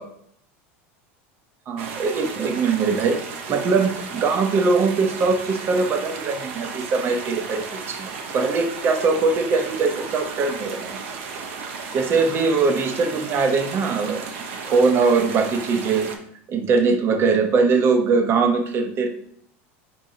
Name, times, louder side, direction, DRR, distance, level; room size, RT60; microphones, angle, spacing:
voice 1, 1.7-3.2 3.5-11.0 11.9-14.2 14.6-16.1 16.5-19.1, right 4 dB, 35° right, 5 dB, 0.7 m, -21 dB
sound 1, 1.8-16.2, right 5 dB, 75° right, 0.8 m, -34 dB
4.5 x 4.1 x 2.8 m, 0.67 s
supercardioid pair, 125°, 7 cm